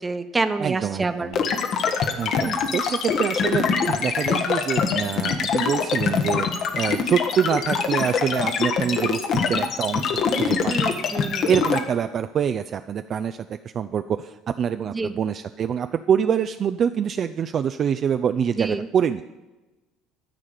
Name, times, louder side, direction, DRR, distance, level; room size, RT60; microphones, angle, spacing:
voice 1, 0.0-1.3 2.4-2.6 10.7-11.5 14.8-15.1 18.6-18.9, right 3 dB, 20° right, 9 dB, 0.9 m, -27 dB
voice 2, 0.6-1.4 2.2-11.0 11.5-19.2, right 8 dB, 45° right, 9 dB, 0.4 m, -25 dB
sound 1, 1.3-11.8, left 6 dB, 55° left, 1.2 m, -23 dB
13.0 x 4.9 x 8.4 m, 1.1 s
hypercardioid pair, 65°, 0 cm